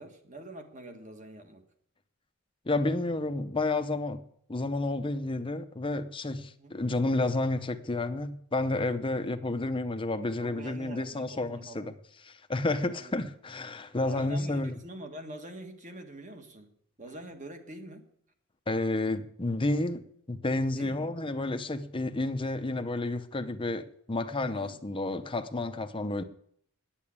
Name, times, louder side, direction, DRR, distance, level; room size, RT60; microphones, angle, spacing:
voice 1, 0.0-1.6 6.6-6.8 10.4-11.9 12.8-13.2 14.0-18.0 20.7-21.1 24.5-24.8, right 1 dB, 35° right, 1.5 m, -45 dB
voice 2, 2.7-4.2 4.5-11.9 12.2-14.7 18.7-26.2, left 2 dB, 25° left, 0.7 m, -31 dB
9.8 x 8.7 x 8.5 m
head